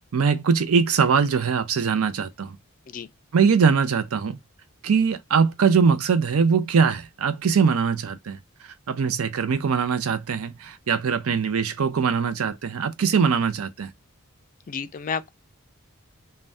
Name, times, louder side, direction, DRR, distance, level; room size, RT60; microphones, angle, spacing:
voice 1, 0.1-2.6 3.3-4.4 4.8-8.4 8.9-13.9, right 6 dB, 70° right, 0.5 m, -22 dB
voice 2, 14.7-15.3, left 6 dB, 40° left, 0.3 m, -31 dB
2.6 x 2.2 x 3.3 m
head